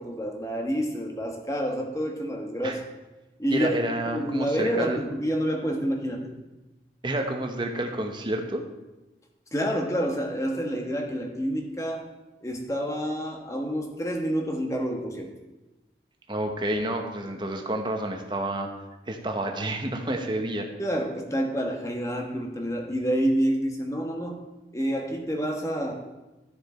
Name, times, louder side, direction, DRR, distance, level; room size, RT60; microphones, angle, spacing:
voice 1, 0.0-2.8 3.4-3.7 4.1-6.3 9.5-12.1 12.4-15.3 20.8-24.4 24.7-25.9, equal, 20° left, 1 dB, 1.3 m, -28 dB
voice 2, 3.5-5.0 7.0-8.6 16.3-18.7 19.1-20.7, right 1 dB, 25° right, 3 dB, 1.1 m, -29 dB
13.5 x 6.6 x 4.4 m, 1.1 s
head